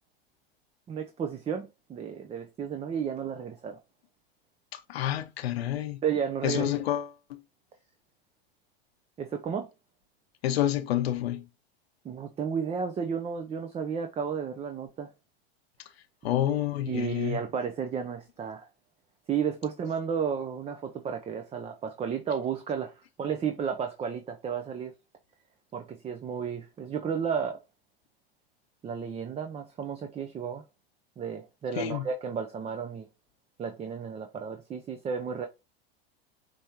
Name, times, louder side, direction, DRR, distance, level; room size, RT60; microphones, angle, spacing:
voice 1, 0.9-3.8 6.0-6.7 9.2-9.7 12.0-15.1 16.9-18.7 19.3-24.9 25.7-27.6 28.8-30.6 31.2-33.1 33.6-35.5, right 7 dB, 20° right, 0.5 m, -33 dB
voice 2, 4.7-6.0 6.4-7.4 10.4-11.4 16.2-17.4 31.8-32.0, left 12 dB, 80° left, 0.7 m, -29 dB
5.3 x 3.3 x 2.8 m
hypercardioid pair, 110°, 30 cm